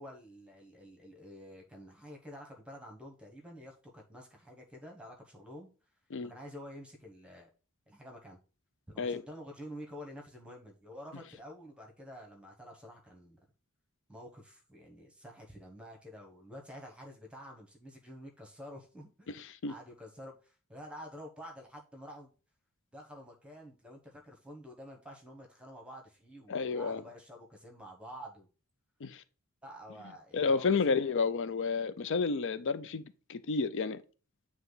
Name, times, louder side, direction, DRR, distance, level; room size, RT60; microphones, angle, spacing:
voice 1, 0.0-5.7 6.3-7.5 7.9-8.4 8.9-13.4 14.1-22.3 22.9-28.5 29.6-31.0, equal, 5° right, 1.1 m, -49 dB
voice 2, 19.3-19.7 26.5-27.0 29.0-29.2 30.3-33.0 33.3-34.0, left 4 dB, 60° left, 0.5 m, -31 dB
8.8 x 3.0 x 4.0 m
head